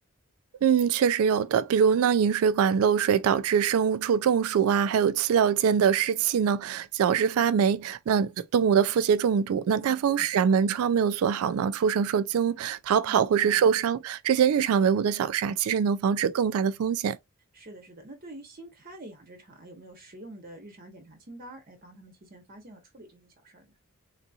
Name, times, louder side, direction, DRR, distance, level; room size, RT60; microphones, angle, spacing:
voice 1, 0.6-17.2, right 7 dB, 90° right, 0.3 m, -23 dB
voice 2, 9.8-10.6 13.1-13.7 17.5-23.7, right 1 dB, 45° right, 0.9 m, -47 dB
3.8 x 2.7 x 2.3 m
head